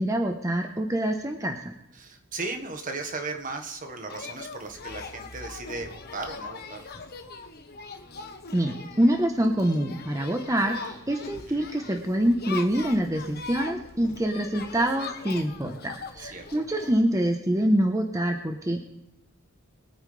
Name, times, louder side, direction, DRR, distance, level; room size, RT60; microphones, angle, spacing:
voice 1, 0.0-1.7 8.5-18.8, right 1 dB, 15° right, 3 dB, 1.1 m, -25 dB
voice 2, 1.9-6.9 11.4-11.7 16.2-16.6, right 3 dB, 40° right, 5 dB, 1.5 m, -36 dB
sound 1, 4.1-16.9, left 4 dB, 50° left, 1.2 m, -41 dB
23.0 x 9.0 x 3.4 m, 0.85 s
head